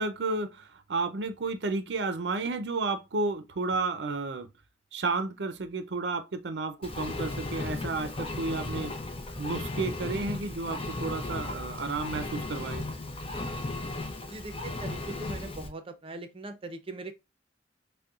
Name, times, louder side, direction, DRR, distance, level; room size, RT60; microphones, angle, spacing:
voice 1, 0.0-4.5 4.9-8.9 9.4-12.8, right 3 dB, 70° right, 0.5 m, -32 dB
Engine, 6.8-15.7, left 2 dB, 30° left, 0.7 m, -35 dB
voice 2, 14.2-17.1, right 2 dB, 30° right, 0.6 m, -41 dB
6.5 x 2.2 x 2.4 m
head